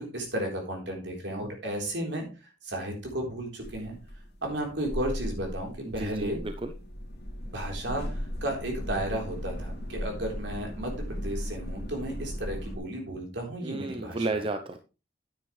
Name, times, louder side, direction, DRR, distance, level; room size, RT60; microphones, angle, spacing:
voice 1, 0.0-2.3 2.6-4.0 4.4-6.4 7.4-14.4, right 1 dB, 65° right, 1 dB, 3.8 m, -34 dB
sound 1, 3.6-12.8, equal, 55° left, 2.5 m, -37 dB
voice 2, 5.8-6.7 13.6-14.8, right 2 dB, 30° right, 7 dB, 0.6 m, -33 dB
9.7 x 9.3 x 3.2 m, 0.30 s
head